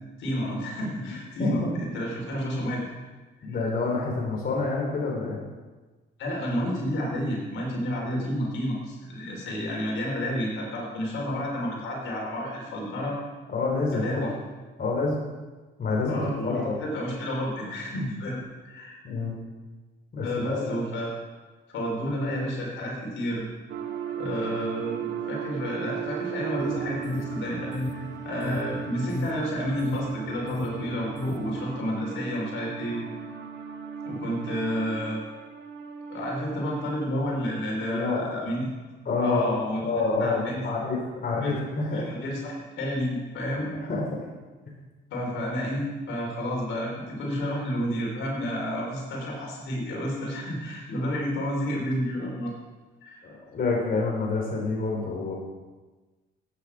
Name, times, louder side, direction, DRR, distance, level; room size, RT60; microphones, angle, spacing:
voice 1, 0.2-3.0 6.2-13.2 13.9-14.3 16.1-19.0 20.2-21.1 21.7-23.4 24.2-33.0 34.0-35.2 36.1-38.7 39.2-39.8 40.2-40.7 41.4-41.5 41.9-43.7 45.1-52.5 53.0-53.2, equal, 80° left, -2 dB, 4.3 m, -30 dB
voice 2, 1.4-1.7 3.4-5.4 13.5-14.3 14.8-15.2 15.8-16.7 19.0-19.4 20.1-20.7 37.9-38.2 39.1-42.1 43.7-44.0 53.2-55.3, left 3 dB, 50° left, -2 dB, 3.8 m, -27 dB
sound 1, 23.7-37.3, right 7 dB, 70° right, 1.3 m, -36 dB
sound 2, 26.6-31.8, left 1 dB, 15° left, 1.1 m, -34 dB
15.0 x 9.3 x 4.9 m, 1.3 s
cardioid pair, 90°, 20 cm